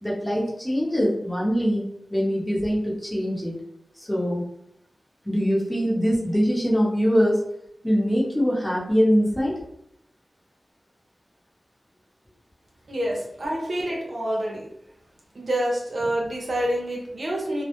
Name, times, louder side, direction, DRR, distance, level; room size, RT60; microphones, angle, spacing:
voice 1, 0.0-1.8 2.1-3.6 4.0-4.4 5.2-7.4 7.8-9.5, equal, 10° left, -5 dB, 0.8 m, -23 dB
voice 2, 12.9-14.6 15.3-17.6, right 1 dB, 65° right, -2 dB, 0.6 m, -27 dB
2.1 x 2.1 x 2.9 m, 0.75 s
wide cardioid pair, 70°, 0 cm